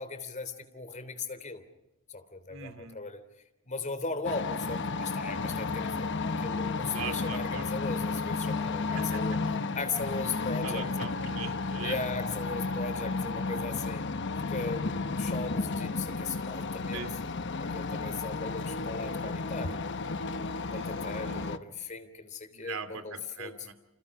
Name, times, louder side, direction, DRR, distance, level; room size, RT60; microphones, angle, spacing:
voice 1, 0.0-1.6 2.1-3.2 3.7-9.4 9.7-10.8 11.8-14.0 14.5-17.0 17.6-19.8 20.7-23.5, left 4 dB, 35° left, 10 dB, 3.3 m, -38 dB
voice 2, 2.5-3.0 6.9-7.6 8.9-9.4 10.6-12.0 16.9-17.1 20.7-21.5 22.5-23.7, right 5 dB, 80° right, 9 dB, 2.7 m, -41 dB
sound 1, 4.2-21.6, left 3 dB, 60° left, 1.1 m, -33 dB
29.5 x 28.5 x 4.9 m, 0.95 s
head